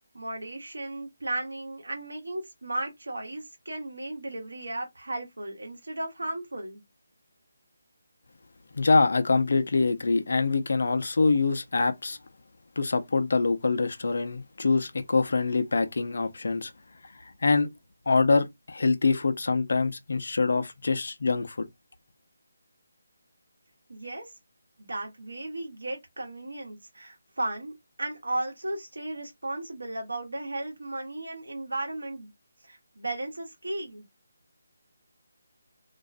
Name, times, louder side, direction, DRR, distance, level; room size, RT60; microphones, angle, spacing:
voice 1, 0.1-6.8 23.9-24.3 24.8-32.3 32.6-34.0, right 2 dB, 85° right, 0.9 m, -35 dB
voice 2, 8.7-12.2 12.8-16.7 17.4-17.7 18.1-21.7, left 3 dB, 65° left, 0.5 m, -24 dB
2.4 x 2.2 x 2.4 m
figure-of-eight pair, 160°, 0 cm